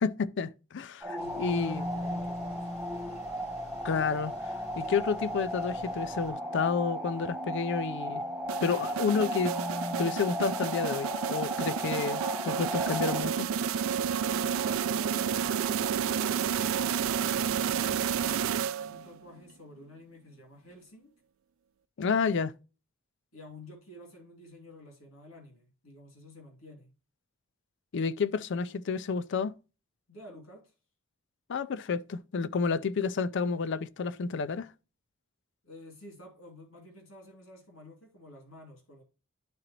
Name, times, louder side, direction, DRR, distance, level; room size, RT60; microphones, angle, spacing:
voice 1, 0.0-1.8 3.8-4.3 4.8-8.2 8.6-9.5 10.0-13.5 22.0-22.5 27.9-29.5 31.5-34.7, left 5 dB, 60° left, 0.4 m, -30 dB
sound 1, 1.0-13.2, equal, 5° right, 0.9 m, -35 dB
voice 2, 1.1-2.7 14.2-18.6 18.9-21.1 23.3-26.9 30.1-30.7 32.7-32.9 35.6-39.0, left 1 dB, 90° left, 2.7 m, -50 dB
sound 2, 1.2-6.3, equal, 30° left, 2.1 m, -50 dB
sound 3, 8.5-19.2, right 7 dB, 70° right, 0.3 m, -30 dB
11.5 x 3.9 x 2.9 m
head